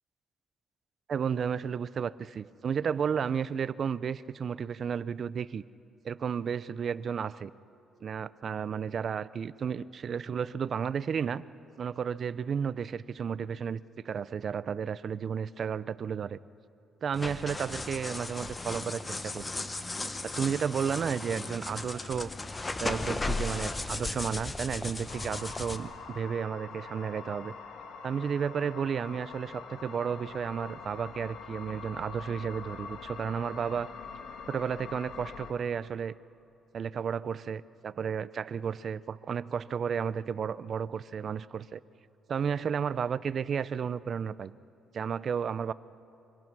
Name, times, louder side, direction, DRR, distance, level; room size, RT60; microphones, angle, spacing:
voice 1, 1.1-5.6 6.0-7.5 8.0-11.4 11.8-16.4 17.0-19.5 20.2-22.3 22.8-27.5 28.0-33.9 34.5-36.1 36.7-41.8 42.3-44.5 44.9-45.7, right 7 dB, 50° right, 17 dB, 0.5 m, -32 dB
sound 1, 17.1-25.8, left 2 dB, 20° left, 1.2 m, -36 dB
sound 2, 25.1-35.5, left 5 dB, 80° left, 2.0 m, -44 dB
25.0 x 22.0 x 6.2 m, 2.8 s
cardioid pair, 90°, 0 cm